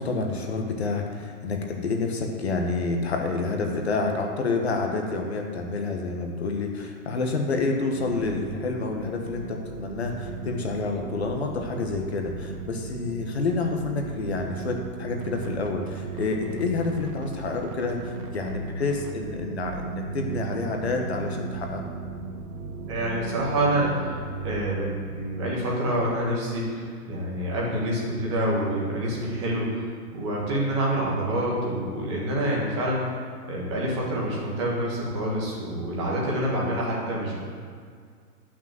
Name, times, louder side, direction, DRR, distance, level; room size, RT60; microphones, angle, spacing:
voice 1, 0.0-21.8, left 3 dB, 45° left, 2 dB, 1.2 m, -28 dB
sound 1, 8.0-24.6, right 4 dB, 90° right, 1.7 m, -36 dB
voice 2, 22.9-24.2 24.4-33.1 33.5-37.5, right 1 dB, 20° right, -4 dB, 1.6 m, -27 dB
10.0 x 6.2 x 7.5 m, 2.1 s
hypercardioid pair, 180°, 46 cm